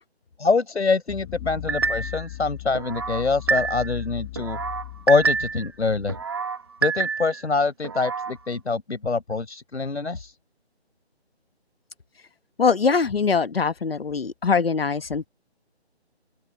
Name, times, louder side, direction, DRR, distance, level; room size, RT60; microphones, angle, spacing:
voice 1, 0.4-4.6 5.1-6.1 6.8-10.3, left 4 dB, 90° left, 5.3 m, -24 dB
sound 1, 1.1-6.2, left 16 dB, 10° left, 2.3 m, -38 dB
sound 2, 1.7-2.3 2.7-4.0 4.4-5.7 6.1-7.4 7.8-8.3, right 5 dB, 25° right, 1.2 m, -27 dB
voice 2, 12.6-15.3, left 5 dB, 60° left, 1.3 m, -22 dB
open air
hypercardioid pair, 175°, 33 cm